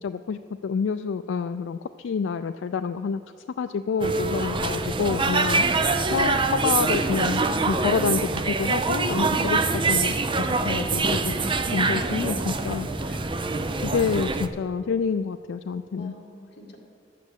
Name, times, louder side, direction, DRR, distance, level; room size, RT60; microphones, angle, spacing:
voice 1, 0.0-3.2 3.6-9.6 9.9-13.2 13.8-16.1, left 6 dB, 85° left, 10 dB, 0.3 m, -28 dB
sound 1, 4.0-14.5, right 3 dB, 25° right, 0.5 m, -24 dB
voice 2, 9.2-10.0 15.9-16.8, left 2 dB, 60° left, -1 dB, 2.1 m, -42 dB
11.5 x 8.4 x 8.2 m, 2.4 s
head